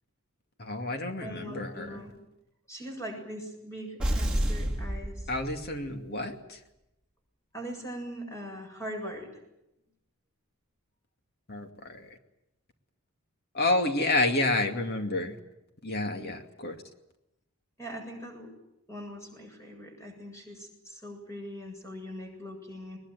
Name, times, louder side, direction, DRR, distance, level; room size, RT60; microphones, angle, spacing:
voice 1, 0.6-2.0 5.3-6.6 11.5-12.1 13.5-15.4 15.8-16.8, left 2 dB, 45° left, 5 dB, 2.5 m, -29 dB
voice 2, 1.2-2.1 2.7-5.3 7.5-9.3 17.8-18.5 18.9-23.0, equal, 15° left, 3 dB, 7.5 m, -41 dB
sound 1, 4.0-5.9, right 1 dB, 5° right, 3.1 m, -30 dB
21.5 x 21.0 x 9.4 m, 0.86 s
head